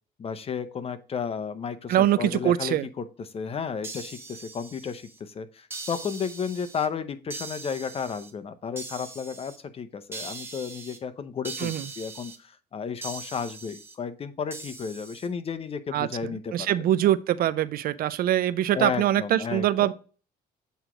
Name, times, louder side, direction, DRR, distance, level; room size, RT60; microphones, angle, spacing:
voice 1, 0.2-16.9 18.7-19.9, left 6 dB, 35° left, 0.7 m, -33 dB
voice 2, 1.9-2.9 11.6-11.9 15.9-19.9, right 12 dB, 60° right, 0.4 m, -24 dB
sound 1, 3.8-5.2 5.7-6.9 7.3-8.3 8.8-9.6 10.1-11.0 11.4-12.4 13.0-14.0 14.5-15.3, right 3 dB, 15° right, 1.2 m, -41 dB
8.0 x 3.1 x 4.9 m
cardioid pair, 110°, 17 cm